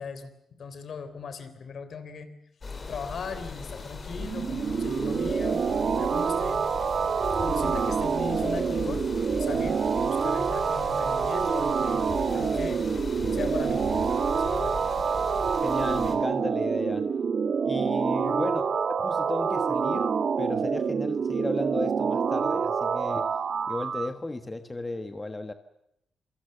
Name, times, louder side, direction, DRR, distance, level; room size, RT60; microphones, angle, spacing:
voice 1, 0.0-2.3 2.9-6.7 7.4-9.1 9.4-12.1 12.3-13.0 13.3-13.9 14.3-14.8 18.2-18.5, left 5 dB, 55° left, 11 dB, 3.5 m, -38 dB
sound 1, 2.6-16.2, left 3 dB, 35° left, 4.7 m, -38 dB
sound 2, 4.2-24.1, right 6 dB, 50° right, 1.3 m, -27 dB
voice 2, 15.6-17.0 17.6-23.3 23.7-25.5, left 2 dB, 15° left, 8 dB, 1.4 m, -34 dB
27.5 x 24.0 x 6.9 m, 0.80 s
cardioid pair, 135°, 0 cm